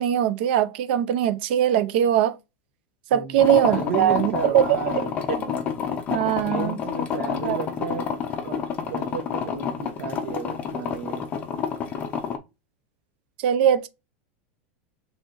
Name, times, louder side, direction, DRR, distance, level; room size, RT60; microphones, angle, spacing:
voice 1, 0.0-2.4 3.1-4.6 5.3-5.4 6.1-6.8 7.4-7.6 13.4-13.9, right 10 dB, 50° right, 0.6 m, -21 dB
sound 1, 3.4-12.4, left 7 dB, 20° left, 0.6 m, -29 dB
voice 2, 3.6-5.1 6.2-8.1 8.4-11.3, right 6 dB, 70° right, 1.1 m, -33 dB
6.1 x 3.3 x 2.6 m
supercardioid pair, 175°, 7 cm